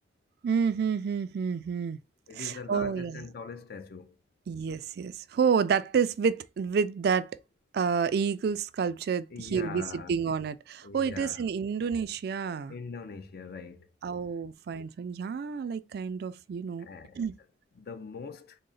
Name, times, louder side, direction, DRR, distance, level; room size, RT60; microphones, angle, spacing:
voice 1, 0.4-2.0 2.3-3.3 4.5-7.4 7.7-12.7 14.0-16.9 17.2-17.3, right 6 dB, 60° right, 0.3 m, -29 dB
voice 2, 2.3-4.1 9.3-10.2 10.8-11.4 12.7-13.9 16.8-17.2 17.7-18.6, left 4 dB, 55° left, 0.5 m, -42 dB
3.8 x 2.1 x 3.8 m
head